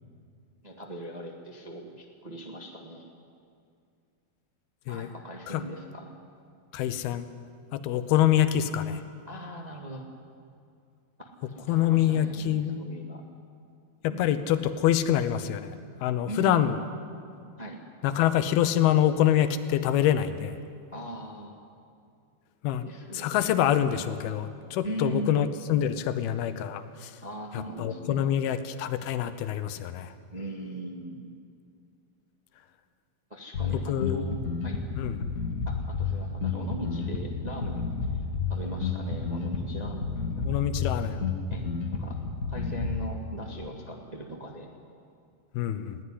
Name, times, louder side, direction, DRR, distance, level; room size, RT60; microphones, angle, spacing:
voice 1, 0.6-3.1 4.9-6.1 9.2-10.1 11.2-13.2 14.1-14.5 16.3-16.8 17.6-17.8 20.9-21.5 22.8-23.6 24.8-25.6 27.2-28.5 30.3-31.2 33.3-34.8 35.6-37.8 38.5-40.6 41.5-41.6 42.0-42.2 42.5-44.7, right 1 dB, 30° right, 0 dB, 0.7 m, -39 dB
voice 2, 6.7-7.3 7.7-9.0 11.7-12.8 14.0-15.8 16.0-16.8 18.0-20.6 22.6-22.9 23.1-27.1 27.8-30.1 33.9-34.3 35.0-35.3 40.4-41.2 45.5-46.0, left 11 dB, 85° left, 11 dB, 2.8 m, -25 dB
Bass guitar, 33.5-43.1, left 5 dB, 45° left, 1.2 m, -31 dB
21.0 x 16.5 x 10.0 m, 2.3 s
omnidirectional pair, 4.3 m